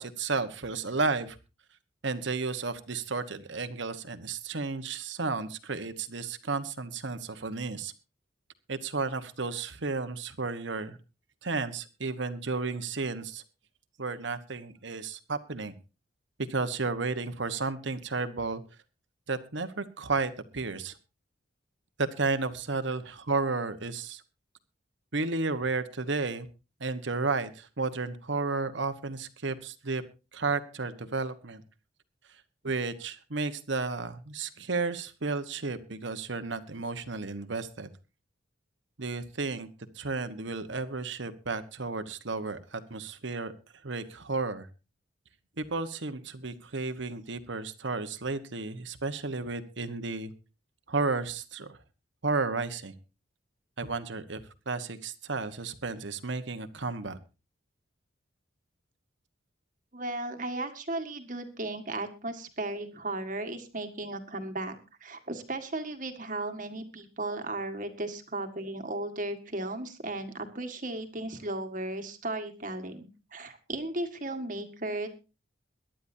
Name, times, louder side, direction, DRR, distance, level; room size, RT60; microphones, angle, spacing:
voice 1, 0.0-1.4 2.0-7.9 8.7-11.0 11.4-13.4 14.0-15.7 16.5-18.6 19.3-21.0 22.0-24.2 25.1-26.5 26.8-30.0 30.3-31.6 32.6-37.9 39.0-39.7 39.9-43.5 43.8-44.7 45.6-50.3 50.9-51.8 52.2-52.9 53.8-57.2, right 3 dB, 70° right, 10 dB, 1.2 m, -32 dB
voice 2, 59.9-64.7 65.0-75.1, right 2 dB, 40° right, 7 dB, 1.7 m, -35 dB
22.5 x 11.5 x 2.7 m, 0.30 s
head